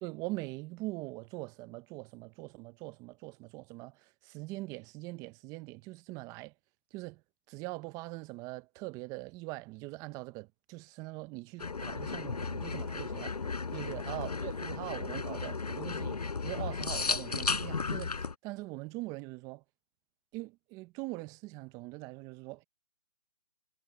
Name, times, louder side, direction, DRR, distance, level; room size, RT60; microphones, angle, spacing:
voice 1, 0.0-6.5 6.9-7.2 7.5-13.4 13.7-19.6 20.3-22.6, right 22 dB, 15° right, 0.8 m, -42 dB
sound 1, 11.6-18.3, left 4 dB, 85° left, 5.6 m, -35 dB
hypercardioid pair, 150°, 20 cm